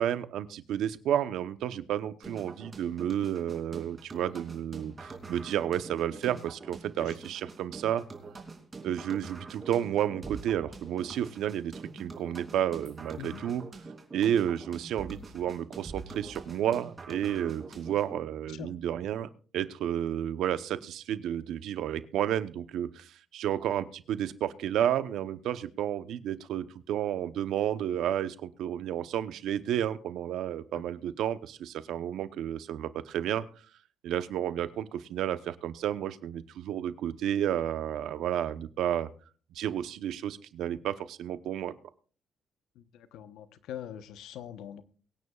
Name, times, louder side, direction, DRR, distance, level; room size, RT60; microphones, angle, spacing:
voice 1, 0.0-8.0 8.8-13.6 14.1-33.4 34.0-39.1 39.5-41.7, right 10 dB, 75° right, 13 dB, 0.9 m, -31 dB
sound 1, 2.2-18.2, right 3 dB, 25° right, 2.8 m, -45 dB
voice 2, 42.8-44.8, left 10 dB, 85° left, 12 dB, 1.0 m, -43 dB
23.0 x 9.6 x 2.4 m, 0.41 s
cardioid pair, 110°, 0 cm